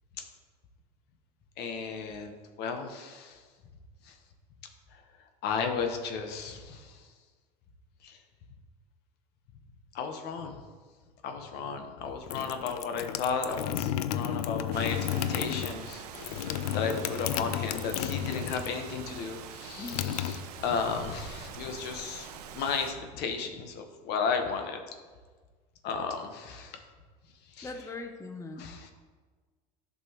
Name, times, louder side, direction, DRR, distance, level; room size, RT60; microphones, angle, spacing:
voice 1, 1.6-3.4 4.1-4.2 5.4-7.0 8.0-8.2 9.9-10.6 11.2-15.0 15.3-24.8 25.8-26.8 27.6-27.7 28.6-28.9, left 5 dB, 60° left, 5 dB, 1.2 m, -34 dB
sound 1, 12.0-18.8 19.1-21.0, left 10 dB, 75° left, 0.4 m, -33 dB
Rain, 14.7-22.9, right 7 dB, 85° right, 0.7 m, -45 dB
voice 2, 19.8-20.1 27.6-28.8, left 3 dB, 15° left, 5 dB, 0.7 m, -41 dB
11.0 x 6.1 x 3.0 m, 1.4 s
hypercardioid pair, 85°, 19 cm